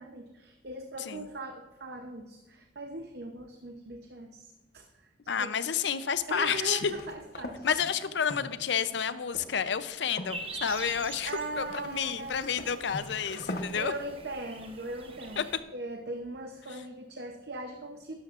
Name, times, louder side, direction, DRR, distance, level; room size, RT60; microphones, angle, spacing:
voice 1, 0.0-5.1 5.4-5.5 6.3-7.8 8.3-8.4 11.2-12.5 13.7-18.1, right 2 dB, 60° right, 4 dB, 0.7 m, -40 dB
voice 2, 5.3-6.8 7.6-11.3 11.6-13.9 15.4-15.5, left 7 dB, 75° left, 13 dB, 0.6 m, -30 dB
sound 1, 6.6-13.8, left 1 dB, 55° left, 1.0 m, -42 dB
sound 2, 10.3-15.6, right 3 dB, 30° right, 0.9 m, -45 dB
12.0 x 11.0 x 2.5 m, 1.1 s
head